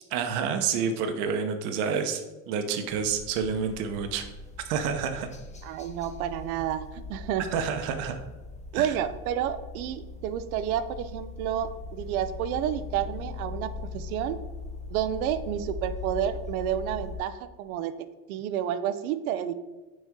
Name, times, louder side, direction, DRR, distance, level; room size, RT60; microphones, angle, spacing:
voice 1, 0.1-4.2 4.7-5.3 7.5-8.1 8.7-8.9, right 6 dB, 70° right, 7 dB, 0.9 m, -29 dB
sound 1, 2.9-17.2, left 3 dB, 15° left, 0.6 m, -40 dB
voice 2, 5.6-7.5 8.7-14.4 14.9-17.9 18.3-19.5, right 10 dB, 90° right, 13 dB, 0.6 m, -30 dB
6.4 x 4.1 x 3.6 m, 1.1 s
supercardioid pair, 105°, 42 cm